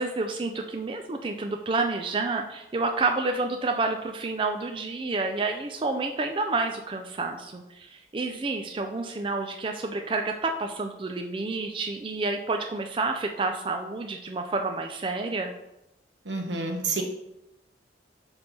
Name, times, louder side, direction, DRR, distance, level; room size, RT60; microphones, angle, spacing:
voice 1, 0.0-15.5, right 3 dB, 30° right, 4 dB, 0.4 m, -29 dB
voice 2, 16.2-17.0, right 3 dB, 80° right, 2 dB, 1.1 m, -29 dB
5.3 x 4.4 x 5.4 m, 0.90 s
head